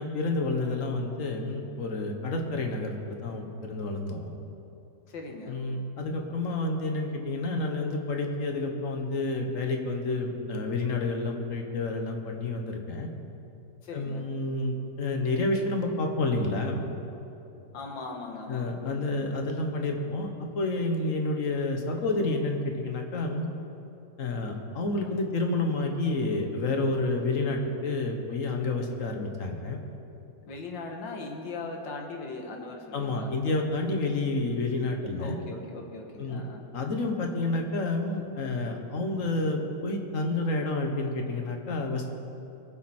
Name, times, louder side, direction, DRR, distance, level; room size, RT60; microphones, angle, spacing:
voice 1, 0.0-4.3 5.5-13.1 13.9-16.8 18.5-23.5 24.2-29.8 32.9-35.4 36.2-36.4 36.7-42.1, left 2 dB, 50° left, 3 dB, 1.5 m, -29 dB
voice 2, 5.1-5.6 13.8-14.3 17.7-19.2 30.4-33.3 35.2-36.6, left 3 dB, 85° left, 2 dB, 2.1 m, -39 dB
22.0 x 7.5 x 4.4 m, 2.8 s
omnidirectional pair, 1.9 m